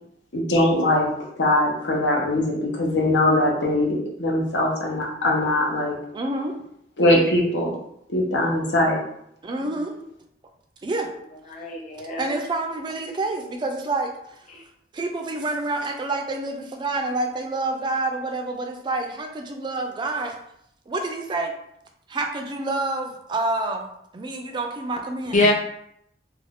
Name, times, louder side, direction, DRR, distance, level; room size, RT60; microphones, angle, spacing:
voice 1, 0.3-1.1 1.4-6.0 7.0-7.7 8.1-9.0, left 1 dB, 85° left, -1 dB, 0.7 m, -21 dB
voice 2, 6.1-6.5 9.4-9.9 10.8-11.1 12.2-14.4 14.9-20.4 20.9-21.5 22.1-25.4, right 2 dB, 25° right, 3 dB, 0.3 m, -28 dB
voice 3, 11.5-12.4 14.5-14.6 25.3-25.5, left 2 dB, 45° left, 0 dB, 0.5 m, -24 dB
2.5 x 2.2 x 3.3 m, 0.74 s
head